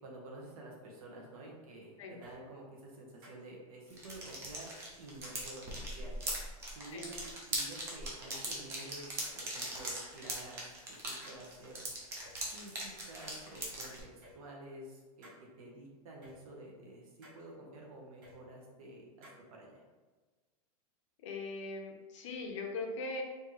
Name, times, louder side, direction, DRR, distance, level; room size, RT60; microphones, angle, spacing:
voice 1, 0.0-4.7 5.0-6.1 6.7-11.8 12.5-15.3 15.6-19.8, right 1 dB, 65° right, -2 dB, 1.3 m, -50 dB
sound 1, 2.2-2.3 3.2-3.4 4.2-4.3 5.2-5.4 6.2-6.3 7.2-7.8 8.2-8.3 9.2-9.4 10.2-10.3 11.2-11.4 12.2-12.3 13.2-13.4 14.2-14.3 15.2-15.4 16.2-16.3 17.2-17.4 18.2-18.4 19.2-19.4, equal, 35° right, 1.4 m, -56 dB
sound 2, 3.9-14.0, right 1 dB, 15° right, 0.5 m, -40 dB
voice 2, 21.2-23.2, left 3 dB, 50° left, 2 dB, 0.7 m, -40 dB
4.4 x 2.8 x 3.3 m, 1.3 s
supercardioid pair, 180°, 19 cm